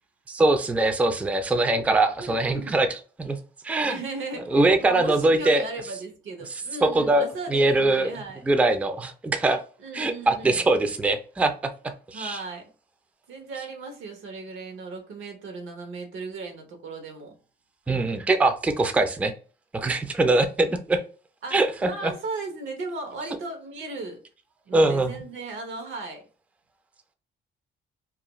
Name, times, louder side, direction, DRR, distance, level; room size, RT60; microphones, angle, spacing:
voice 1, 0.3-3.4 3.6-4.0 4.5-5.6 6.8-9.6 9.9-11.5 12.1-12.4 17.9-19.3 19.7-21.0 21.5-22.1 24.7-25.1, right 2 dB, 5° right, 0.3 m, -22 dB
voice 2, 2.2-2.8 3.8-8.4 9.8-10.6 12.1-12.7 13.3-17.3 17.9-18.2 21.4-24.2 24.7-26.2, right 3 dB, 80° right, 0.8 m, -36 dB
2.4 x 2.2 x 3.0 m
cardioid pair, 90°, 20 cm